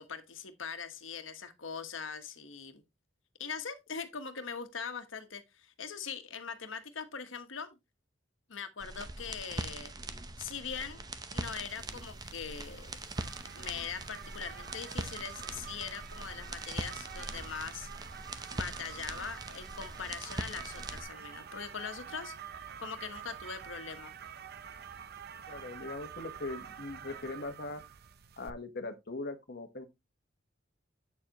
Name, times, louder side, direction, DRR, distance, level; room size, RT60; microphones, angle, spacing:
voice 1, 0.0-2.8 3.4-7.7 8.5-9.9 10.4-11.0 11.3-12.9 13.5-17.9 18.5-22.3 22.8-24.1, left 6 dB, 85° left, 1.2 m, -41 dB
sound 1, 8.8-21.0, right 2 dB, 20° right, 0.7 m, -42 dB
sound 2, 11.5-28.5, right 8 dB, 55° right, 0.6 m, -48 dB
voice 2, 25.5-27.8 28.4-29.8, left 2 dB, 55° left, 1.2 m, -40 dB
8.3 x 6.9 x 2.9 m
head